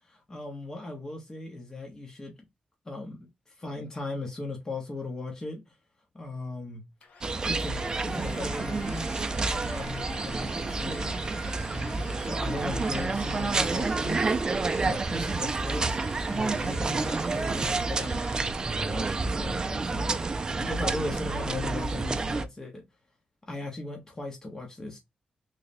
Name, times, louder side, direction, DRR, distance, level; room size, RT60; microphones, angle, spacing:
voice 1, 0.1-2.3 2.9-3.2 3.6-5.6 6.2-6.8 7.4-9.1 9.4-11.1 11.7-14.2 14.8-16.0 16.3-18.2 18.7-20.2 20.6-22.8 23.5-25.0, left 2 dB, 25° left, 0.9 m, -37 dB
Domestic sounds home sounds, 7.0-19.1, left 4 dB, 80° left, 0.8 m, -46 dB
sound 1, 7.2-22.4, right 3 dB, 30° right, 0.4 m, -29 dB
3.3 x 2.2 x 4.0 m
wide cardioid pair, 140°, 3 cm